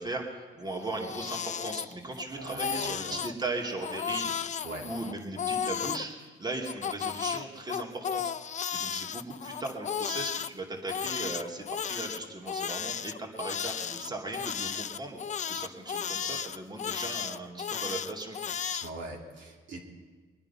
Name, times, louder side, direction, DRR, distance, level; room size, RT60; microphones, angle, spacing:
voice 1, 0.0-6.1 6.4-15.2 15.5-18.4, right 2 dB, 20° right, 0 dB, 2.6 m, -38 dB
Crying sobbing, 0.8-2.2 2.5-3.3 3.8-6.0 6.6-10.5 10.9-18.9, left 8 dB, 40° left, 0.5 m, -34 dB
voice 2, 2.3-3.2 4.6-4.9 18.7-19.8, right 2 dB, 70° right, -1 dB, 2.8 m, -41 dB
23.5 x 9.7 x 5.7 m, 1.4 s
cardioid pair, 90°, 20 cm